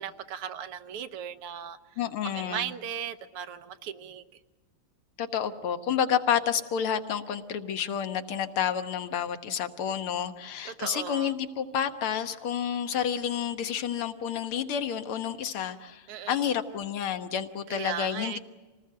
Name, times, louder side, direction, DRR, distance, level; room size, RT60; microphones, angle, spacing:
voice 1, 0.0-1.8 2.3-4.2 10.7-11.3 16.1-16.4 17.7-18.4, right 9 dB, 85° right, 10 dB, 1.9 m, -37 dB
voice 2, 2.0-2.7 5.2-18.4, left 8 dB, 75° left, 8 dB, 2.0 m, -30 dB
26.5 x 19.0 x 7.7 m, 1.4 s
omnidirectional pair, 2.4 m